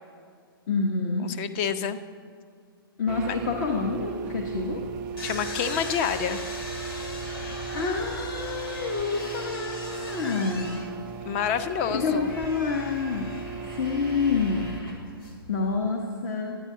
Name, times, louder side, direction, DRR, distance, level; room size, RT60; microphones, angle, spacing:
voice 1, 0.7-1.3 3.0-4.8 7.3-10.7 11.9-13.2 13.7-14.6 15.5-16.6, left 4 dB, 50° left, 1 dB, 1.0 m, -28 dB
voice 2, 1.2-2.0 5.2-6.4 11.2-12.3, left 8 dB, 30° left, 11 dB, 0.5 m, -28 dB
sound 1, 3.1-14.8, right 5 dB, 30° right, 0.4 m, -37 dB
sound 2, 4.5-15.8, left 2 dB, 70° left, 2.4 m, -40 dB
12.0 x 9.4 x 3.7 m, 2.2 s
hypercardioid pair, 140°, 13 cm